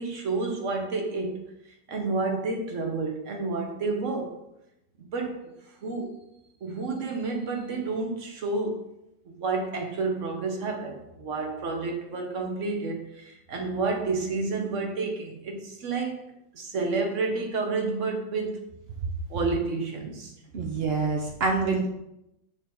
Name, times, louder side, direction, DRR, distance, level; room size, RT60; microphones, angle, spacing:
voice 1, 0.0-1.4 1.9-4.4 5.0-5.5 5.8-6.2 6.6-8.8 9.4-16.2 16.5-18.6 19.3-20.3, right 3 dB, 50° right, 2 dB, 1.1 m, -30 dB
voice 2, 20.5-21.9, right 4 dB, 90° right, 1 dB, 0.5 m, -26 dB
6.2 x 3.6 x 4.5 m, 0.85 s
omnidirectional pair, 2.0 m